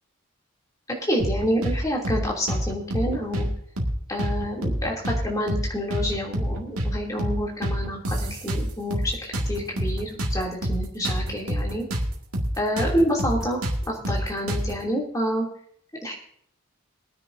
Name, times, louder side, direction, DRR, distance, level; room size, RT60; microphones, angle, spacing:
voice 1, 1.1-3.5 4.1-11.9 12.6-13.6 13.9-15.5 16.0-16.1, equal, 15° left, -2 dB, 2.9 m, -28 dB
sound 1, 1.2-1.8 2.0-2.2 2.5-3.5 3.8-3.9 4.2-5.2 5.5-5.6 5.9-6.9 7.2-7.4 7.6-9.1 9.3-12.1 12.3-12.5 12.8-14.8, equal, 80° right, 2.1 m, -27 dB
22.0 x 9.9 x 2.7 m, 0.65 s
head